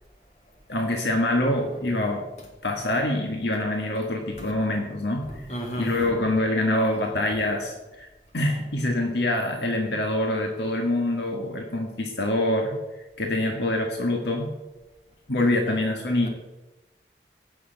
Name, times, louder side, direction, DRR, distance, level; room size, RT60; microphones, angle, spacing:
voice 1, 0.7-2.2 2.6-5.3 5.8-8.1 8.3-12.8 13.2-14.5 15.3-16.3, left 1 dB, 70° left, 2 dB, 1.7 m, -25 dB
voice 2, 5.3-6.1, right 1 dB, 35° left, 0 dB, 2.9 m, -33 dB
15.5 x 6.3 x 8.0 m, 1.1 s
head